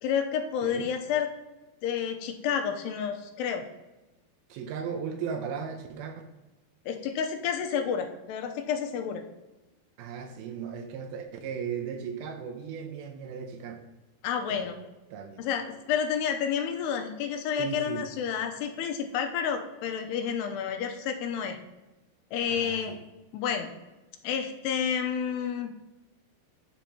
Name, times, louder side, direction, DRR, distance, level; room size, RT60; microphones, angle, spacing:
voice 1, 0.0-1.3 1.8-3.6 6.9-9.2 14.2-14.8 15.4-21.6 22.3-23.0 23.3-23.7 24.2-25.7, left 7 dB, 85° left, 5 dB, 2.8 m, -30 dB
voice 2, 4.5-6.2 10.0-13.8 14.5-14.7 15.1-15.4 17.6-18.1 22.4-23.0, right 6 dB, 80° right, 6 dB, 2.4 m, -36 dB
12.0 x 5.4 x 2.9 m, 1.1 s
omnidirectional pair, 4.7 m